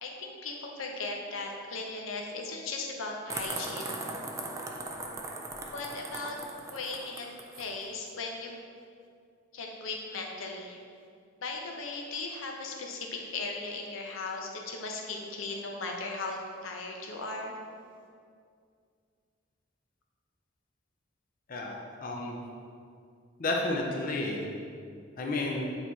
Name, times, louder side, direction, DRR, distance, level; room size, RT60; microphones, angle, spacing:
voice 1, 0.0-4.0 5.7-6.4 6.7-7.3 7.5-8.6 9.5-10.8 11.4-17.6, left 3 dB, 85° left, 1 dB, 0.8 m, -37 dB
sound 1, 3.3-7.7, right 2 dB, 15° right, 0.3 m, -39 dB
voice 2, 21.5-22.4 23.4-24.5 25.2-25.7, left 2 dB, 45° left, -1 dB, 0.6 m, -31 dB
8.1 x 3.0 x 4.0 m, 2.3 s
head